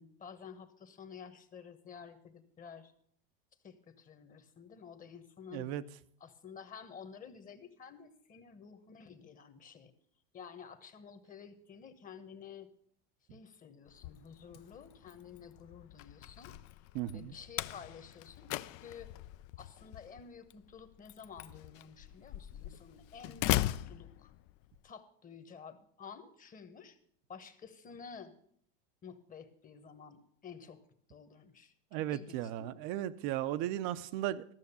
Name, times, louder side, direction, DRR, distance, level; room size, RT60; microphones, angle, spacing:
voice 1, 0.0-2.9 3.6-5.7 6.2-9.9 10.3-12.7 13.3-16.5 17.1-19.1 19.6-24.3 24.8-27.0 27.3-28.3 29.0-30.8 31.1-31.7 32.1-32.8, left 6 dB, 25° left, 1.2 m, -51 dB
voice 2, 5.5-5.8 16.9-17.3 31.9-34.4, right 13 dB, 60° right, 0.7 m, -36 dB
Slam, 13.9-24.8, left 16 dB, 50° left, 0.4 m, -40 dB
13.5 x 6.4 x 6.9 m
supercardioid pair, 115°, 30 cm